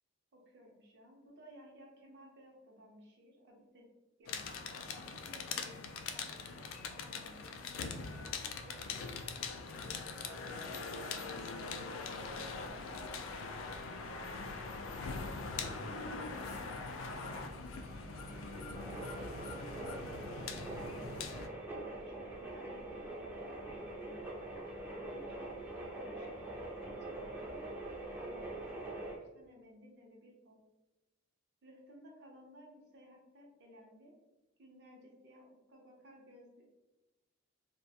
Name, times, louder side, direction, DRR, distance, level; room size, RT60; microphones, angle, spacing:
voice 1, 0.3-3.9 4.2-4.5 5.2-13.2 14.0-17.1 18.9-21.4 21.9-24.3 24.8-27.7 28.1-30.6 31.6-34.1 34.6-36.7, equal, 60° right, 0 dB, 0.6 m, -58 dB
sound 1, 4.3-21.5, left 4 dB, 90° left, 0.3 m, -42 dB
sound 2, 12.3-29.2, right 2 dB, 10° right, 0.4 m, -45 dB
2.3 x 2.1 x 2.7 m, 1.1 s
head